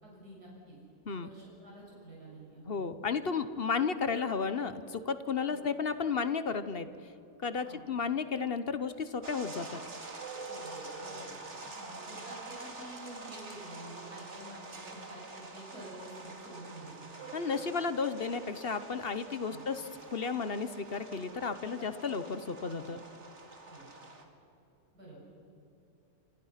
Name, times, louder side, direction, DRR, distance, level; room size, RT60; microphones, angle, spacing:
voice 1, 0.0-0.8 1.1-2.8 5.5-5.6 7.6-7.8 10.5-11.4 11.6-17.1 19.5-19.6 21.6-21.9 22.6-23.0 23.7-23.9 24.9-25.2, right 1 dB, 80° right, -4 dB, 7.3 m, -49 dB
voice 2, 2.7-6.9 7.4-9.8 17.3-23.0, left 5 dB, 45° left, 12 dB, 1.0 m, -33 dB
sound 1, 9.2-24.2, right 3 dB, 45° right, 2.6 m, -46 dB
28.0 x 25.5 x 5.8 m, 2.9 s
omnidirectional pair, 1.6 m